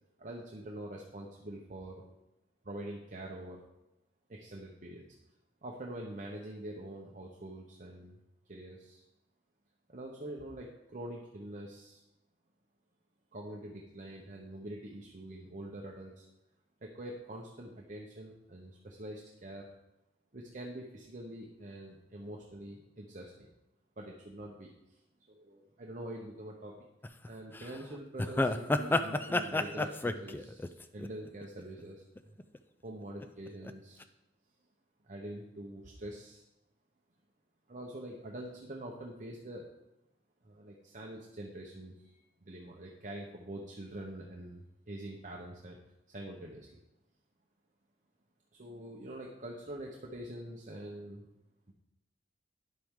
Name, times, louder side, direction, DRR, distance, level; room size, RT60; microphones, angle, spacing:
voice 1, 0.2-2.1 2.6-3.6 4.3-5.0 5.6-8.2 8.5-9.0 9.9-12.0 13.3-16.3 16.8-19.7 20.3-23.5 24.0-25.0 25.3-26.8 27.3-32.4 32.8-34.0 35.0-36.4 37.7-39.7 40.4-45.8 46.1-46.8 48.5-51.3 51.7-51.8, right 1 dB, 45° right, -1 dB, 0.9 m, -45 dB
sound 1, 27.0-27.3 27.5-27.7 28.2-31.8 32.2-32.6 33.2-33.7 34.0-34.1, left 2 dB, 10° left, 0.4 m, -31 dB
10.5 x 7.5 x 3.7 m, 0.93 s
head